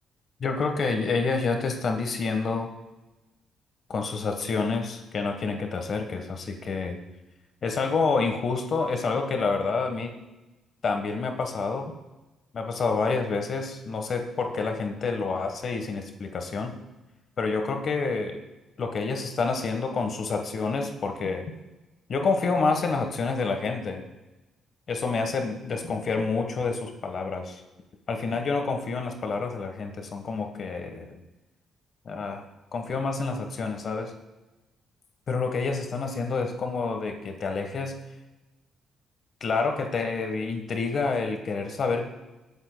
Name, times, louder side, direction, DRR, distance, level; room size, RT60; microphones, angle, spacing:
voice 1, 0.4-2.7 3.9-7.0 7.6-10.2 10.8-11.9 12.5-16.7 17.4-18.4 18.8-21.5 22.1-24.1 24.9-27.6 28.1-31.2 32.0-32.4 32.7-34.1 35.3-38.0 39.4-42.0, left 4 dB, 50° left, 5 dB, 1.3 m, -28 dB
22.5 x 8.4 x 2.3 m, 1.1 s
cardioid pair, 90°, 0 cm